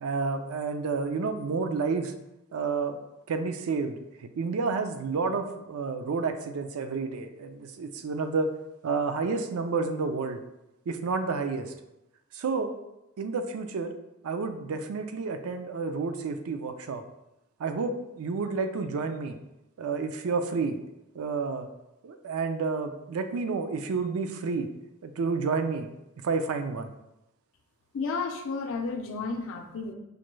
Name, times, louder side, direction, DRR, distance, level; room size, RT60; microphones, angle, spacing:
voice 1, 0.0-2.1 2.5-3.0 3.3-8.5 8.8-10.4 10.9-11.7 12.3-12.7 13.2-13.9 14.2-17.0 17.6-19.4 19.8-20.8 21.1-21.7 22.0-24.7 25.0-25.9 26.2-26.9, right 4 dB, 80° right, 8 dB, 0.4 m, -30 dB
voice 2, 27.9-29.9, left 4 dB, 65° left, 5 dB, 0.5 m, -32 dB
5.1 x 2.2 x 3.1 m, 0.91 s
head